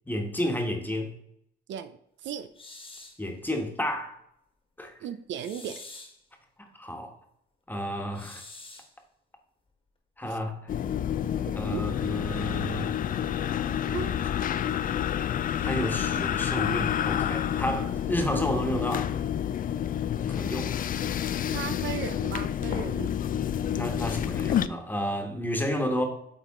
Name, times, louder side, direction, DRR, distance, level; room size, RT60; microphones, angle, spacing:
voice 1, 0.1-1.1 3.2-4.2 4.8-4.9 6.7-7.1 7.7-8.4 10.2-10.7 11.5-13.1 15.6-19.1 20.3-20.7 23.7-26.0, equal, 10° left, 1.3 m, -31 dB
voice 2, 1.7-2.5 5.0-5.8 10.2-10.4 11.7-11.8 13.9-14.1 21.5-23.2, right 9 dB, 70° right, 0.5 m, -36 dB
sound 1, 2.5-3.2 5.4-6.2 8.1-8.9, left 3 dB, 25° left, 1.4 m, -46 dB
sound 2, 10.7-24.7, left 10 dB, 45° left, 0.4 m, -29 dB
8.6 x 3.7 x 3.7 m
cardioid pair, 90°, 20 cm